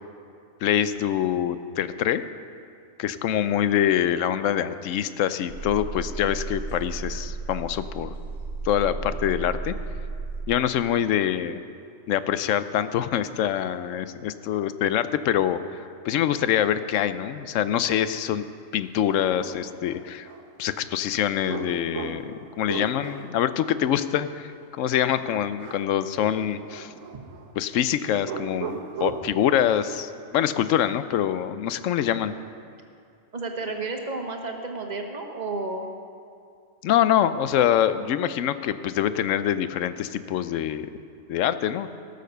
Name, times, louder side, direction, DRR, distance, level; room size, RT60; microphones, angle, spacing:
voice 1, 0.6-2.2 3.0-8.1 8.6-9.7 10.5-11.6 12.1-18.4 18.7-20.3 20.6-26.9 27.6-32.3 36.8-40.9 41.3-41.9, left 10 dB, 75° left, 13 dB, 0.9 m, -25 dB
sound 1, 5.5-10.5, right 4 dB, 90° right, 2.1 m, -34 dB
sound 2, 18.4-18.5 19.1-20.5 21.4-23.4 25.6-26.0 26.3-27.5 28.2-29.3, right 6 dB, 70° right, 1.4 m, -37 dB
voice 2, 33.3-35.9, right 3 dB, 35° right, 3 dB, 1.2 m, -31 dB
16.5 x 6.7 x 6.7 m, 2.4 s
omnidirectional pair, 1.4 m